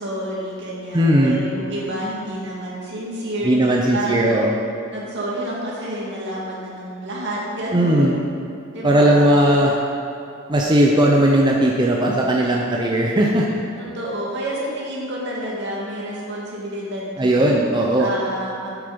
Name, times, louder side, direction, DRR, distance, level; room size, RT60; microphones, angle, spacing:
voice 1, 0.0-4.4 4.9-8.1 8.7-9.4 13.8-17.5 18.0-18.7, right 1 dB, 55° right, -5 dB, 2.2 m, -29 dB
voice 2, 0.9-1.4 3.4-4.5 7.7-8.2 8.8-9.7 10.5-13.5 17.2-18.1, right 1 dB, 20° right, -2 dB, 0.6 m, -17 dB
8.0 x 7.3 x 5.2 m, 2.7 s
head